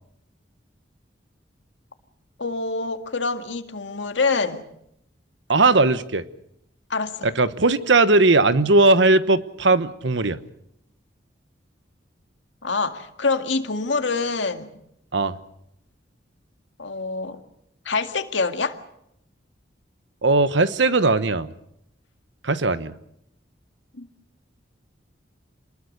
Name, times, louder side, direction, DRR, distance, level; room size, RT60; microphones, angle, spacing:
voice 1, 2.4-4.6 6.9-7.3 12.6-14.7 16.8-17.4 17.9-18.8 23.9-24.1, left 4 dB, 75° left, 7 dB, 2.0 m, -25 dB
voice 2, 5.5-6.2 7.2-10.4 15.1-15.4 20.2-21.5 22.4-22.9, right 3 dB, 75° right, 13 dB, 1.2 m, -18 dB
27.0 x 20.5 x 6.6 m, 0.76 s
head